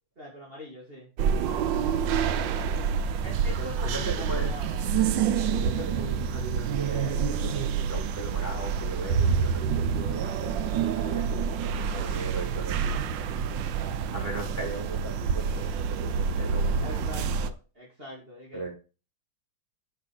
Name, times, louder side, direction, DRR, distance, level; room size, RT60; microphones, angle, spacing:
voice 1, 0.2-1.1 2.3-2.8 3.2-4.9 11.7-12.2 13.1-14.2 16.8-18.6, equal, 30° right, -4 dB, 2.9 m, -44 dB
sound 1, 1.2-17.5, right 6 dB, 90° right, 1.5 m, -27 dB
voice 2, 3.5-4.5 5.5-13.0 14.1-15.7 16.0-17.0 18.5-18.7, right 2 dB, 10° left, -2 dB, 4.4 m, -37 dB
7.6 x 6.5 x 5.9 m, 0.32 s
omnidirectional pair, 2.0 m